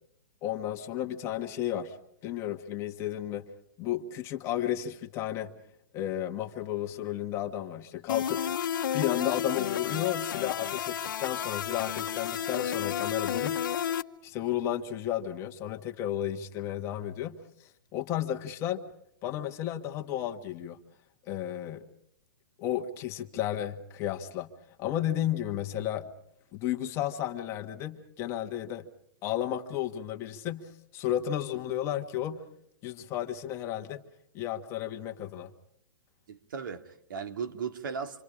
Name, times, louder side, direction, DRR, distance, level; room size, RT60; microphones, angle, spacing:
voice 1, 0.4-2.0 2.2-3.4 3.8-5.5 5.9-8.4 8.9-13.6 14.2-17.4 17.9-18.8 19.2-20.8 21.2-21.8 22.6-24.5 24.8-26.1 26.5-28.9 29.2-32.4 32.8-34.0 34.3-35.5, left 11 dB, 25° left, 1.5 m, -33 dB
sound 1, 8.1-14.0, left 9 dB, 75° left, 1.0 m, -31 dB
voice 2, 36.3-38.2, right 6 dB, 75° right, 2.2 m, -37 dB
27.5 x 24.5 x 5.0 m
hypercardioid pair, 160°, 11 cm